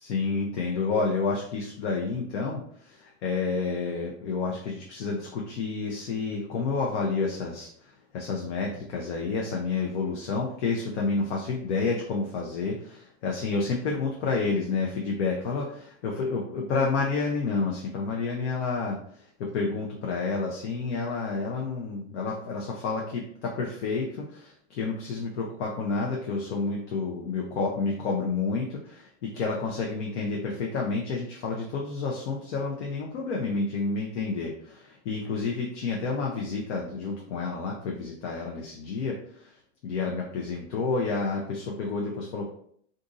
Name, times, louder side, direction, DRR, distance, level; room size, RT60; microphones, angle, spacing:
voice 1, 0.0-7.7 8.1-39.5 39.8-42.5, left 4 dB, 65° left, -1 dB, 0.7 m, -30 dB
2.6 x 2.5 x 3.8 m, 0.64 s
supercardioid pair, 180°, 37 cm